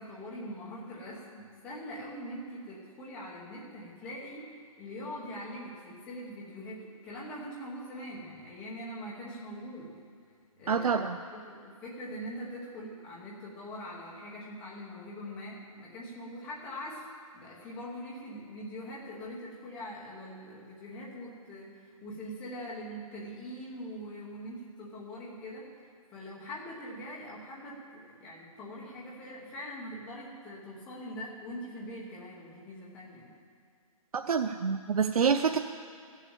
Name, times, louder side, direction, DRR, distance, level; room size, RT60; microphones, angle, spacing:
voice 1, 0.0-4.4 4.8-9.9 10.6-17.1 17.3-33.3, equal, 5° left, -5 dB, 1.1 m, -43 dB
voice 2, 10.7-11.2 34.1-35.6, right 6 dB, 90° right, 5 dB, 0.7 m, -27 dB
13.5 x 7.3 x 8.9 m, 2.3 s
hypercardioid pair, 180°, 18 cm